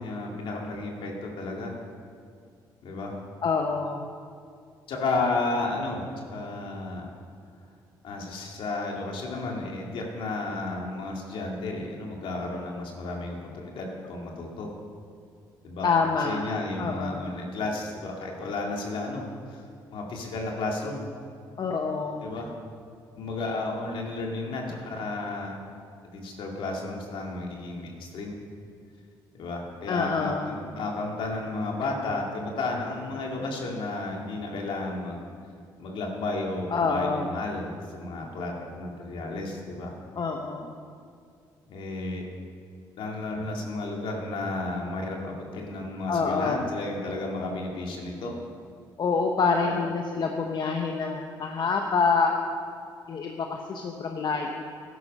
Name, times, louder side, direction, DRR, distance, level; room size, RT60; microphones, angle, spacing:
voice 1, 0.0-1.8 2.8-3.2 4.9-7.1 8.0-14.7 15.6-15.9 16.2-19.6 19.9-21.0 22.2-22.5 23.2-25.6 26.1-28.4 29.3-35.2 35.8-39.9 41.7-42.3 43.0-48.3 49.6-49.8, left 2 dB, 75° left, 0 dB, 2.6 m, -32 dB
voice 2, 3.4-4.0 15.8-16.5 16.8-17.2 21.6-22.2 29.9-30.5 36.7-37.3 40.2-40.7 46.1-46.6 49.0-52.3 53.1-54.6, left 4 dB, 55° left, 2 dB, 1.1 m, -26 dB
13.5 x 11.5 x 5.5 m, 2.2 s
supercardioid pair, 65°, 9 cm